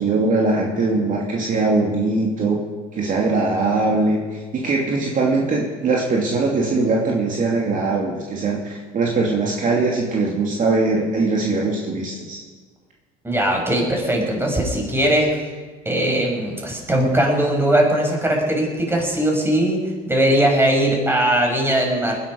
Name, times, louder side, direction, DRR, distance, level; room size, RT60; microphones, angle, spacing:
voice 1, 0.0-2.6 2.9-12.4, right 3 dB, 45° right, -2 dB, 2.9 m, -21 dB
voice 2, 13.2-15.5 15.8-19.8 20.1-22.2, right 1 dB, 10° right, 0 dB, 5.9 m, -19 dB
20.0 x 11.0 x 5.5 m, 1.4 s
supercardioid pair, 85°, 19 cm